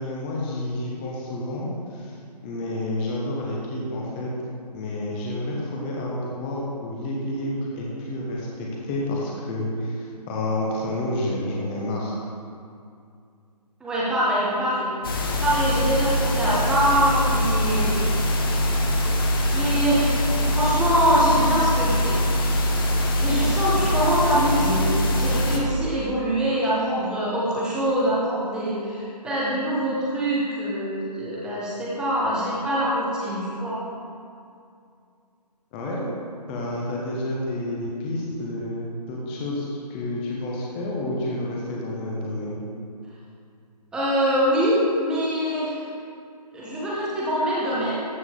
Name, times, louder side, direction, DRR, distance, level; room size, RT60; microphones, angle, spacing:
voice 1, 0.0-2.1 2.4-4.3 4.7-12.2 35.7-36.1 36.5-42.6, left 1 dB, 15° left, -3 dB, 1.3 m, -29 dB
voice 2, 13.8-14.9 15.4-18.0 19.5-20.2 20.5-22.2 23.2-33.8 43.9-45.8 46.5-48.0, equal, 5° right, -8 dB, 1.1 m, -24 dB
sound 1, 15.0-25.6, left 1 dB, 35° left, 1.2 m, -23 dB
14.0 x 7.9 x 3.8 m, 2.4 s
figure-of-eight pair, 145°, 21 cm